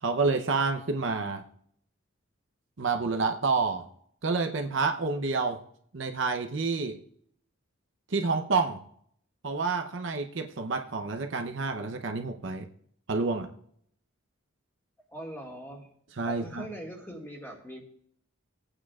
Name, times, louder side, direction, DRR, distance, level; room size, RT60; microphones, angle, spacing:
voice 1, 0.0-1.4 2.8-3.9 4.2-5.6 5.9-7.0 8.1-8.8 9.4-12.7 13.1-13.5 16.2-16.6, right 4 dB, 60° right, 5 dB, 0.7 m, -28 dB
voice 2, 15.1-15.9 16.2-17.8, right 1 dB, 10° left, -1 dB, 1.9 m, -41 dB
19.0 x 8.8 x 2.4 m, 0.65 s
head